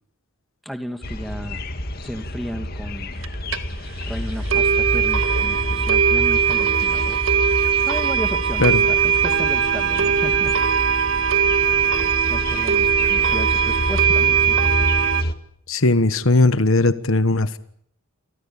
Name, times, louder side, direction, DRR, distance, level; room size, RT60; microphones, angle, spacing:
voice 1, 0.6-1.6 2.0-3.2 4.0-7.2 7.8-10.9 12.3-14.9, equal, ahead, 6 dB, 2.5 m, -34 dB
sound 1, 1.0-15.3, left 1 dB, 45° left, 2.0 m, -29 dB
sound 2, 3.2-3.3 3.5-3.6 4.0-4.1 4.5-15.2, right 7 dB, 75° right, 1.6 m, -20 dB
voice 2, 15.7-17.6, left 2 dB, 75° left, 11 dB, 1.4 m, -18 dB
30.0 x 24.0 x 7.2 m, 0.68 s
head